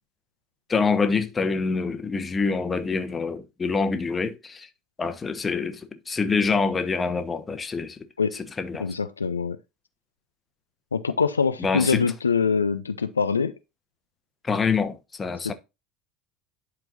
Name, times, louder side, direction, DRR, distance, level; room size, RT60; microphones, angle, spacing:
voice 1, 0.7-4.7 5.0-8.0 8.3-8.9 11.6-12.1 14.4-15.5, left 4 dB, 25° left, 1.0 m, -26 dB
voice 2, 8.8-9.6 10.9-13.5 15.4-15.5, left 5 dB, 85° left, 0.4 m, -24 dB
11.0 x 4.5 x 2.6 m
figure-of-eight pair, 75°, 0 cm